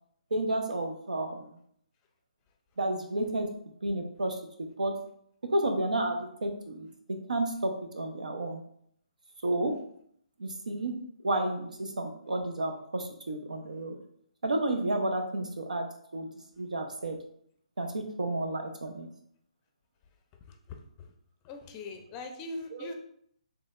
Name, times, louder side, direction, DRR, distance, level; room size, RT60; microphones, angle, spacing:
voice 1, 0.3-1.6 2.8-3.5 3.8-5.0 5.5-6.9 7.3-8.6 9.4-9.7 10.4-10.9 11.2-14.0 14.4-15.9 16.1-16.3 16.6-17.2 17.8-19.1 22.7-22.9, right 1 dB, 85° right, 4 dB, 0.7 m, -31 dB
voice 2, 21.4-22.9, left 2 dB, 25° left, 5 dB, 0.5 m, -40 dB
4.2 x 3.3 x 2.4 m, 0.67 s
hypercardioid pair, 145°, 4 cm